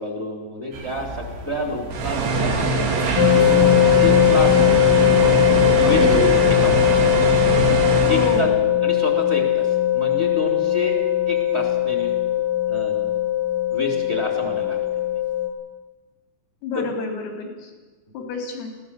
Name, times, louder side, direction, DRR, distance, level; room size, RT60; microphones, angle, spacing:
voice 1, 0.0-2.7 3.2-4.7 5.9-7.1 8.1-8.5 8.8-11.0 11.3-12.2 12.7-13.0 13.7-14.8 16.7-16.8, left 1 dB, 15° right, 1 dB, 3.5 m, -29 dB
sound 1, 0.7-7.4, right 2 dB, 70° right, 5.2 m, -37 dB
sound 2, 1.9-8.4, right 3 dB, 85° right, 4.7 m, -22 dB
sound 3, 3.2-15.5, left 11 dB, 45° left, 2.6 m, -19 dB
voice 2, 8.0-8.7 16.6-17.7 18.1-18.7, left 4 dB, 85° left, 3 dB, 5.7 m, -29 dB
22.0 x 16.5 x 7.7 m, 1.3 s
omnidirectional pair, 4.4 m